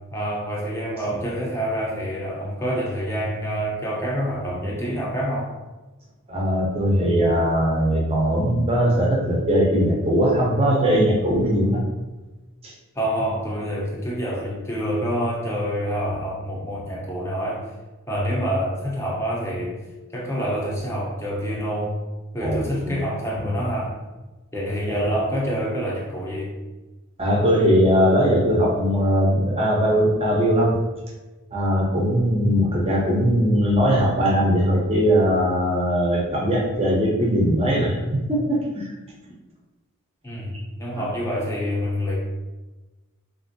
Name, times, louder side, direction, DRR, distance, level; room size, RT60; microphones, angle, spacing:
voice 1, 0.1-5.5 13.0-17.7 18.1-19.8 20.1-21.9 22.3-23.9 24.5-26.5 40.2-42.2, equal, 10° left, -4 dB, 0.6 m, -27 dB
voice 2, 6.3-11.8 12.6-12.7 22.4-23.0 27.2-30.8 31.5-38.9 41.0-41.1, equal, 25° right, -2 dB, 0.6 m, -20 dB
3.4 x 2.5 x 2.6 m, 1.1 s
head